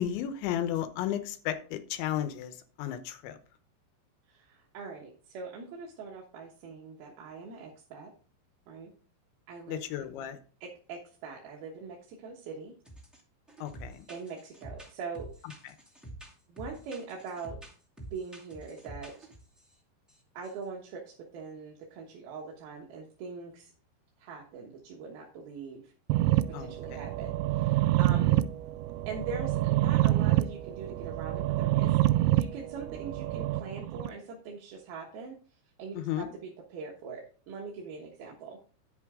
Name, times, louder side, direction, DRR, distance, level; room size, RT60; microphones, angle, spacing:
voice 1, 0.0-3.4 9.7-10.4 13.6-14.1 15.6-15.7 26.5-27.1 28.3-28.5 35.9-36.3, left 11 dB, 85° left, 10 dB, 3.3 m, -34 dB
voice 2, 4.3-8.1 8.7-8.9 9.5-9.8 10.6-12.7 14.1-15.3 16.5-17.6 18.1-19.3 20.3-23.7 24.2-25.9 26.3-28.4 29.1-32.0 32.3-35.4 35.8-38.6, right 4 dB, 65° right, -1 dB, 3.0 m, -42 dB
sound 1, 12.8-13.2 13.5-19.7 20.1-20.2 20.4-20.6, right 2 dB, ahead, 0.7 m, -48 dB
sound 2, 26.1-34.1, right 15 dB, 85° right, 2.8 m, -27 dB
11.0 x 8.1 x 3.7 m, 0.40 s
omnidirectional pair, 5.1 m